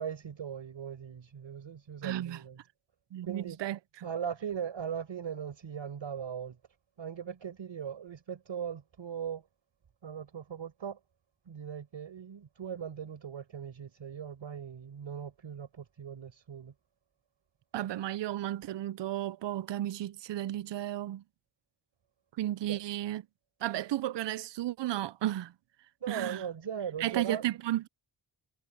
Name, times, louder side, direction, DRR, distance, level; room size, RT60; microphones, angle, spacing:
voice 1, 0.0-2.6 3.2-3.6 4.0-6.6 7.0-9.4 10.0-11.0 11.5-16.7 22.7-22.8 26.0-27.5, right 8 dB, 85° right, 5.0 m, -39 dB
voice 2, 2.0-2.4 3.1-3.8 17.7-21.2 22.4-23.2 23.6-25.5 26.1-26.4 27.0-27.9, right 13 dB, 70° right, 0.6 m, -33 dB
cardioid pair, 65°, 45 cm